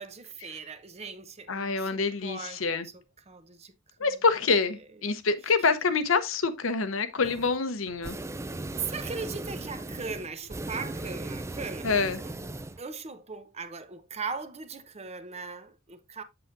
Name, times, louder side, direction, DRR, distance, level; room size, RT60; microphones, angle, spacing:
voice 1, 0.0-1.9 2.2-2.6 3.3-3.7 4.0-4.1 5.0-5.1 8.8-12.3 12.8-16.2, right 5 dB, 30° right, 0.8 m, -39 dB
voice 2, 1.5-2.9 4.0-8.2 11.8-12.2, left 4 dB, 70° left, 0.9 m, -26 dB
sound 1, 7.2-7.6 7.9-12.8, right 2 dB, 15° right, 0.4 m, -38 dB
7.8 x 7.4 x 2.6 m
head